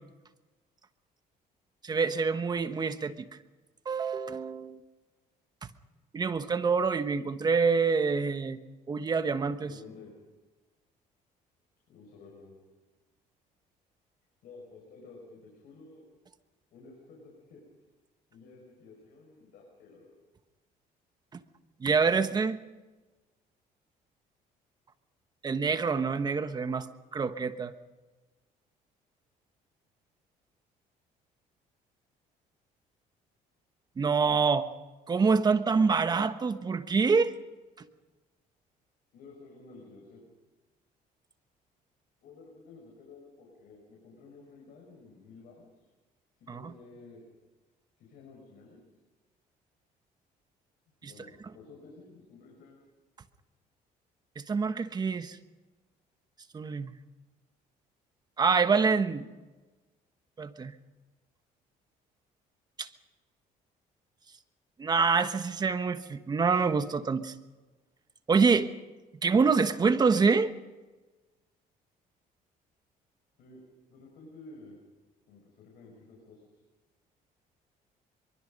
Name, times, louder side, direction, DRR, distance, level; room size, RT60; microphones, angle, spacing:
voice 1, 1.8-3.3 3.8-4.8 6.1-8.6 8.9-9.7 21.8-22.6 25.4-27.7 34.0-34.7 35.1-37.3 46.5-46.6 51.0-51.1 54.5-55.4 56.5-56.9 58.4-59.3 60.4-60.7 62.8-62.9 64.8-67.3 68.3-68.7 69.2-70.5, right 5 dB, 25° right, 9 dB, 1.2 m, -26 dB
voice 2, 9.6-10.1 11.9-12.5 14.4-16.1 16.7-17.6 18.3-20.1 39.1-40.3 42.2-45.7 46.4-47.2 48.0-48.8 51.0-52.8 73.4-73.6 73.9-74.8 75.3-76.5, left 3 dB, 70° left, -1 dB, 6.3 m, -52 dB
24.0 x 23.5 x 5.4 m, 1.2 s
cardioid pair, 130°, 16 cm